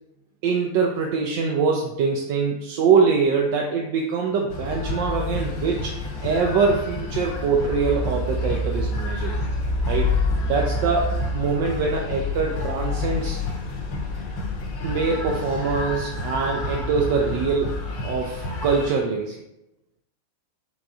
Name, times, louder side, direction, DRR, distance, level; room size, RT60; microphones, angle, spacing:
voice 1, 0.4-5.9 6.2-9.3 9.9-10.1 10.4-13.4 14.8-19.4, right 5 dB, 50° right, 0 dB, 0.4 m, -23 dB
sound 1, 4.5-18.9, left 2 dB, 45° left, 0.6 m, -28 dB
3.4 x 3.1 x 2.6 m, 0.88 s
figure-of-eight pair, 90°, 0 cm